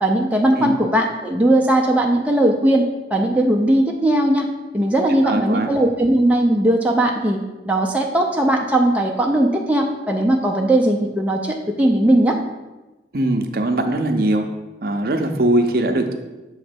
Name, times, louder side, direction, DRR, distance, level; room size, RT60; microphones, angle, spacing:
voice 1, 0.0-4.5 4.7-7.4 7.6-12.4, right 1 dB, 10° right, 0 dB, 0.4 m, -18 dB
voice 2, 5.2-5.7 13.1-14.5 14.8-16.1, right 1 dB, 55° right, 5 dB, 0.6 m, -20 dB
6.9 x 3.2 x 5.1 m, 1.1 s
head